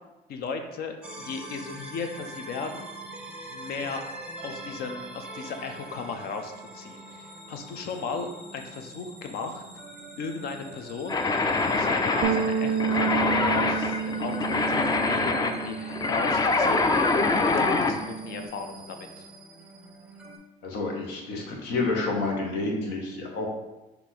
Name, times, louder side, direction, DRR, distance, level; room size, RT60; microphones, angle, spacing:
voice 1, 0.3-2.9 3.5-4.0 4.4-9.6 10.2-11.4 11.7-19.3, left 5 dB, 65° left, 5 dB, 0.6 m, -36 dB
sound 1, 1.0-20.4, right 1 dB, 5° right, 0.7 m, -44 dB
sound 2, 11.1-18.0, left 3 dB, 25° left, 0.4 m, -25 dB
sound 3, 12.2-16.8 17.1-18.5, right 7 dB, 70° right, 0.4 m, -31 dB
voice 2, 20.6-23.5, left 3 dB, 90° left, 0 dB, 1.1 m, -29 dB
4.4 x 2.7 x 4.2 m, 1.0 s
cardioid pair, 110°, 17 cm